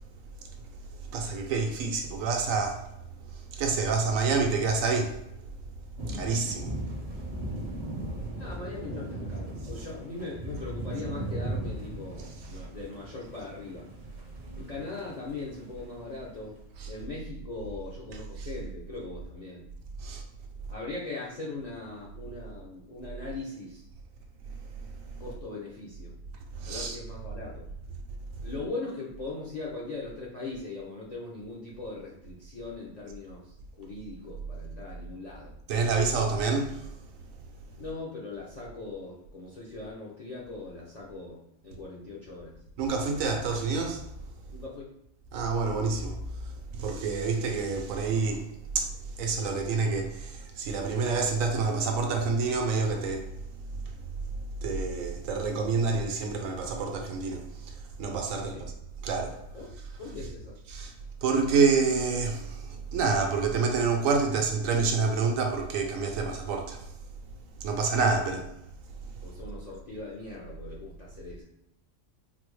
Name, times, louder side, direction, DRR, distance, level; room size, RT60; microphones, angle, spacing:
voice 1, 1.1-2.9 3.5-5.1 6.1-6.7 20.0-20.2 26.6-27.0 35.7-36.9 42.8-44.0 45.3-46.2 46.8-48.5 48.7-48.9 49.2-53.3 54.6-57.4 58.0-58.5 59.0-59.4 60.7-60.9 61.2-66.9 67.6-68.4, right 4 dB, 80° right, 1.0 m, -27 dB
sound 1, 6.0-16.1, right 1 dB, 45° right, 0.6 m, -38 dB
voice 2, 8.4-13.9 14.6-16.6 16.9-19.7 20.7-23.9 25.2-26.2 26.6-27.7 28.4-35.5 37.8-42.6 44.5-44.9 58.3-58.7 59.5-60.6 69.2-71.4, left 3 dB, 55° left, 0.4 m, -40 dB
3.9 x 2.0 x 3.1 m
omnidirectional pair, 1.4 m